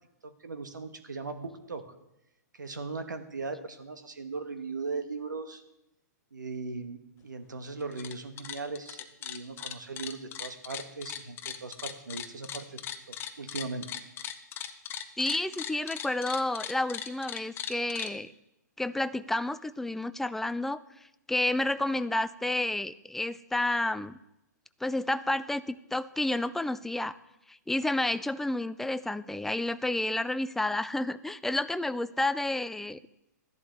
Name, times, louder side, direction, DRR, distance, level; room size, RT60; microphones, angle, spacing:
voice 1, 0.2-1.8 2.6-5.6 6.3-12.8 13.1-13.9, right 4 dB, 90° right, 8 dB, 1.3 m, -38 dB
sound 1, 7.8-8.1 8.4-18.1, left 9 dB, 25° left, 0.7 m, -38 dB
voice 2, 15.2-18.3 18.8-20.8 21.3-24.2 24.8-27.2 27.5-33.0, left 2 dB, 5° left, 14 dB, 0.3 m, -30 dB
13.5 x 11.0 x 3.4 m, 0.88 s
hypercardioid pair, 125°, 10 cm